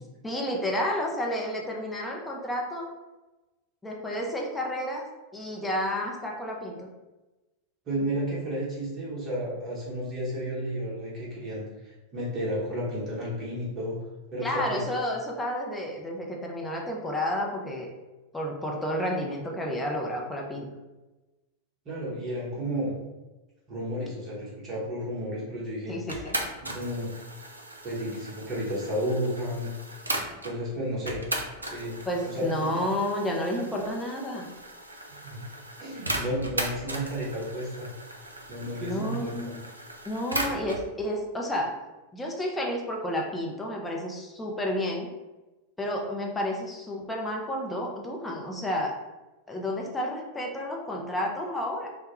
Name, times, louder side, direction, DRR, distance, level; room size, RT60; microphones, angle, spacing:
voice 1, 0.2-2.9 3.8-5.1 5.3-6.9 14.4-17.9 18.3-20.7 25.9-26.4 32.1-34.5 38.8-39.6 40.1-41.7 42.1-45.1 45.8-49.0 49.5-51.9, left 1 dB, 10° left, -1 dB, 0.4 m, -31 dB
voice 2, 7.9-14.0 14.3-14.8 21.9-22.9 23.7-26.0 26.7-27.1 27.8-29.7 30.4-31.2 31.6-32.7 35.2-35.4 35.8-37.9 38.5-39.3, equal, 30° right, -7 dB, 0.8 m, -32 dB
sound 1, 26.1-30.6 31.1-40.9, right 1 dB, 80° right, 0.3 m, -37 dB
2.1 x 2.0 x 2.8 m, 1.1 s
figure-of-eight pair, 90°, 0 cm